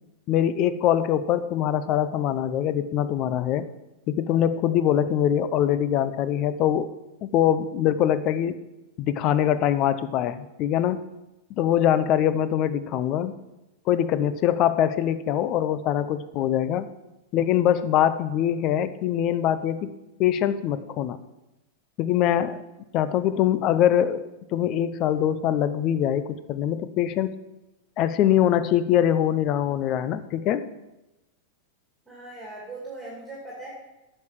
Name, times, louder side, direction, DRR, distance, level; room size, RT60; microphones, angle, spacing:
voice 1, 0.3-3.7 4.1-6.9 7.2-8.6 9.0-11.0 11.5-13.3 13.9-16.9 17.3-19.9 20.2-21.2 22.0-22.6 22.9-27.3 28.0-30.6, left 10 dB, 35° left, 14 dB, 0.6 m, -23 dB
voice 2, 32.1-33.7, right 2 dB, 10° right, -4 dB, 2.4 m, -39 dB
9.2 x 6.6 x 7.3 m, 0.97 s
supercardioid pair, 150°, 0 cm